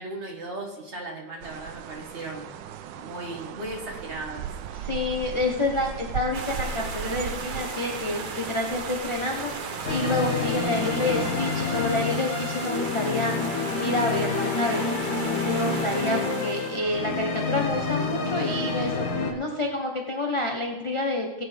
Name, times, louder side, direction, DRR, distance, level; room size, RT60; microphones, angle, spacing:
voice 1, 0.0-2.5 2.9-4.5, right 2 dB, 40° right, 0 dB, 1.9 m, -36 dB
sound 1, 1.4-11.9, right 8 dB, 85° right, 1.3 m, -38 dB
voice 2, 4.7-14.9 15.4-21.4, left 2 dB, 30° left, 1 dB, 0.6 m, -28 dB
sound 2, 6.3-16.8, right 4 dB, 55° right, 0.5 m, -36 dB
sound 3, 9.8-19.3, left 4 dB, 60° left, 1.6 m, -28 dB
18.0 x 8.6 x 3.4 m, 1.1 s
omnidirectional pair, 2.0 m